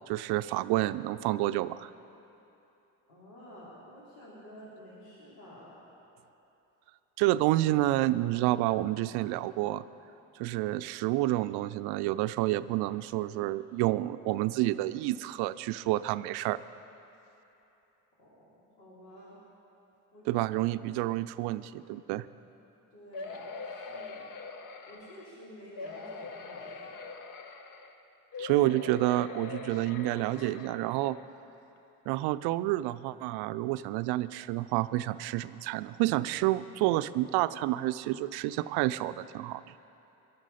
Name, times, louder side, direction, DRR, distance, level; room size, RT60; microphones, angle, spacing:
voice 1, 0.1-1.9 7.2-9.8 10.4-16.6 20.3-22.3 28.4-31.2 32.1-39.6, right 16 dB, 65° right, 14 dB, 0.5 m, -29 dB
voice 2, 3.1-5.8 18.2-19.4 20.1-20.5 22.9-24.3 24.9-26.9, equal, 75° left, -7 dB, 3.5 m, -51 dB
sound 1, 23.1-25.3 25.8-27.9 28.3-31.2 31.8-31.9 32.1-32.2, left 4 dB, 50° left, 1.1 m, -43 dB
19.5 x 12.0 x 4.2 m, 2.9 s
hypercardioid pair, 55°, 42 cm